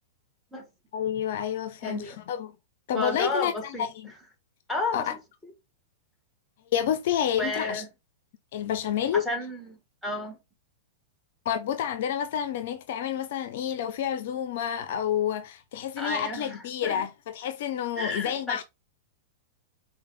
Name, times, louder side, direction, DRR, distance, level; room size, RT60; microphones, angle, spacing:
voice 1, 0.9-2.5 2.9-4.1 4.9-5.1 6.7-7.8 8.5-9.3 11.5-18.6, left 9 dB, 60° left, 0.4 m, -29 dB
voice 2, 1.8-2.2 2.9-3.8 4.7-5.5 7.4-7.9 9.1-10.4 16.0-17.0 18.0-18.6, left 2 dB, 5° left, 1.2 m, -32 dB
4.6 x 2.2 x 3.0 m
hypercardioid pair, 110°, 0 cm